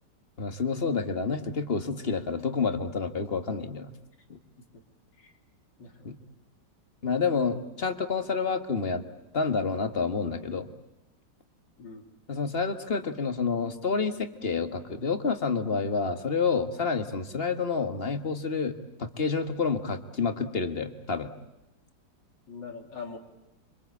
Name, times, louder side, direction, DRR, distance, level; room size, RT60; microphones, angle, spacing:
voice 1, 0.4-3.9 4.3-4.4 6.0-6.2 7.0-9.0 9.3-10.7 12.3-21.3, left 4 dB, 35° left, 9 dB, 1.7 m, -29 dB
voice 2, 5.8-6.1 11.8-12.0 22.5-23.2, left 5 dB, 80° left, 4 dB, 3.7 m, -42 dB
27.0 x 25.0 x 8.4 m, 0.94 s
omnidirectional pair, 1.9 m